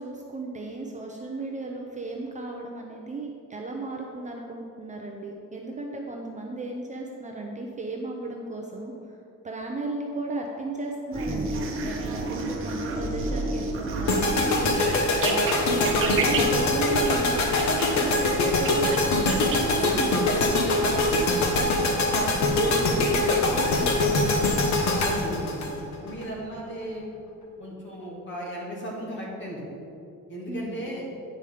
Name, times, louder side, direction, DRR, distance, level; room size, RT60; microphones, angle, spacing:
voice 1, 0.0-8.9 9.4-21.8 22.5-24.4 30.5-30.9, right 2 dB, 25° right, 1 dB, 0.6 m, -35 dB
sound 1, 11.1-17.9 18.2-19.9, right 2 dB, 40° right, 1.0 m, -31 dB
sound 2, 14.1-26.3, left 2 dB, 60° left, 1.1 m, -23 dB
voice 2, 25.0-25.6 26.0-27.1 27.6-29.6 30.3-31.1, equal, 35° left, -3 dB, 2.0 m, -35 dB
9.3 x 5.2 x 5.0 m, 2.7 s
cardioid pair, 155°, 33 cm